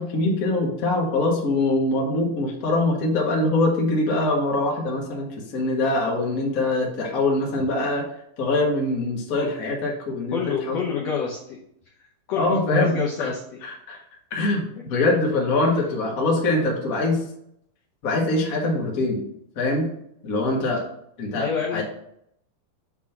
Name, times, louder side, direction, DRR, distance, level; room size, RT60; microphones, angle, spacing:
voice 1, 0.0-8.0 8.4-10.4 10.7-10.8 12.3-13.3 13.6-14.0 14.3-17.2 18.0-19.3 19.5-19.9 20.2-20.8 21.2-21.8, left 2 dB, 40° left, -1 dB, 1.2 m, -23 dB
voice 2, 10.3-11.6 12.3-13.6 21.3-21.8, left 6 dB, 70° left, -3 dB, 1.6 m, -28 dB
7.2 x 4.3 x 5.9 m, 0.74 s
omnidirectional pair, 4.1 m